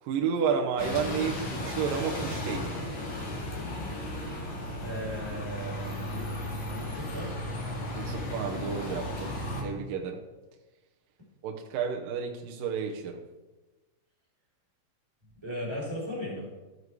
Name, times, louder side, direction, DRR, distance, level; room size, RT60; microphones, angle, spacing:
voice 1, 0.0-2.8 7.9-9.3 9.6-10.2 11.4-13.2, right 6 dB, 80° right, 2 dB, 2.0 m, -31 dB
Bus, 0.8-9.6, left 1 dB, 50° left, 1.4 m, -35 dB
voice 2, 4.8-5.9 6.8-7.3 15.4-16.4, left 1 dB, 5° right, -5 dB, 4.1 m, -36 dB
14.5 x 7.4 x 4.8 m, 1.1 s
omnidirectional pair, 5.4 m